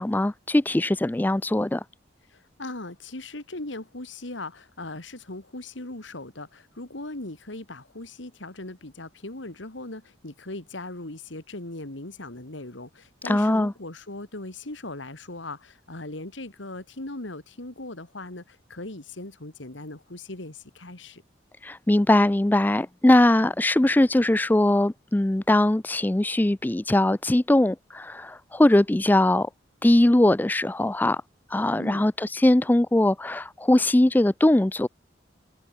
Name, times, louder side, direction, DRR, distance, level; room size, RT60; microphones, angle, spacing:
voice 1, 0.0-1.8 13.2-13.7 21.6-29.5 29.8-31.2 31.5-34.9, left 1 dB, 10° left, 0.3 m, -21 dB
voice 2, 2.3-21.2 31.7-32.0, left 2 dB, 75° left, 2.6 m, -39 dB
head